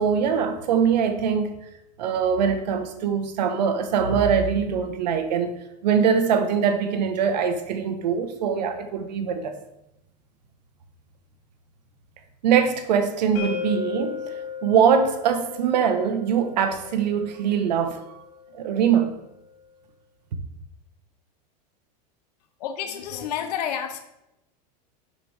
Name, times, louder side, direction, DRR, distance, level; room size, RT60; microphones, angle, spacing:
voice 1, 0.0-1.5 2.0-5.5 5.8-9.5 12.4-18.2 18.5-19.1, right 7 dB, 85° right, 1.5 m, -22 dB
sound 1, 13.4-19.2, left 7 dB, 40° left, 2.3 m, -36 dB
voice 2, 22.6-24.0, left 9 dB, 70° left, 1.2 m, -29 dB
12.0 x 8.3 x 3.6 m
supercardioid pair, 150°, 21 cm